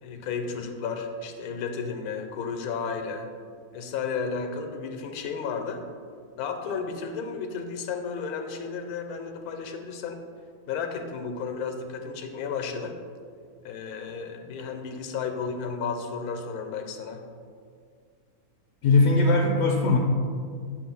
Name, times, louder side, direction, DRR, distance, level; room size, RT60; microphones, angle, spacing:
voice 1, 0.0-3.3 3.7-5.9 6.4-10.2 10.7-13.0 13.6-17.2, left 5 dB, 85° left, 5 dB, 1.1 m, -33 dB
voice 2, 18.8-20.0, left 3 dB, 65° left, 1 dB, 0.8 m, -20 dB
7.3 x 2.6 x 5.2 m, 2.1 s
omnidirectional pair, 1.6 m